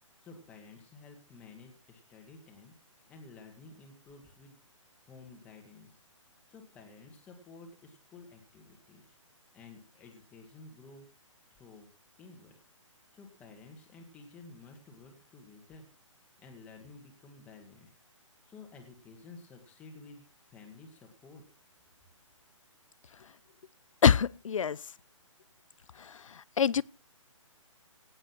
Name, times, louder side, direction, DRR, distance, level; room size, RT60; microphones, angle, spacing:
voice 1, 0.2-2.7 3.1-4.6 5.1-6.0 6.5-9.2 9.5-11.1 11.5-11.9 12.2-12.6 12.9-15.8 16.4-17.9 18.4-21.4, left 3 dB, 10° left, 2.0 m, -52 dB
voice 2, 24.0-24.8 26.6-26.8, left 7 dB, 75° left, 0.6 m, -24 dB
18.0 x 8.0 x 6.1 m
hypercardioid pair, 170°, 17 cm